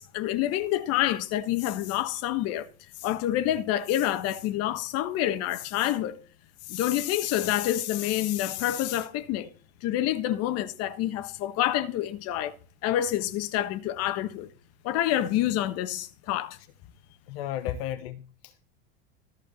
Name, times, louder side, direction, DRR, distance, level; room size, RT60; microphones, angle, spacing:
voice 1, 0.0-2.7 3.0-6.2 6.7-9.5 9.8-12.5 12.8-14.5 14.8-16.6, left 13 dB, 50° left, 1.5 m, -27 dB
voice 2, 17.3-18.7, left 12 dB, 70° left, 1.1 m, -35 dB
14.0 x 5.0 x 7.2 m
hypercardioid pair, 105°, 31 cm